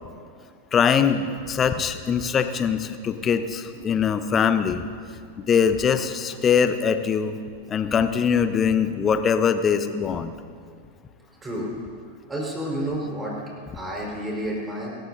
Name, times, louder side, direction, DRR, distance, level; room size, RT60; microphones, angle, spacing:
voice 1, 0.7-4.8 5.4-7.4 7.7-10.3, left 7 dB, 25° left, 10 dB, 0.8 m, -22 dB
voice 2, 11.4-11.8 12.3-13.4 13.7-14.9, right 1 dB, 15° right, -3 dB, 4.6 m, -30 dB
27.0 x 14.0 x 2.7 m, 2.1 s
figure-of-eight pair, 90°, 0 cm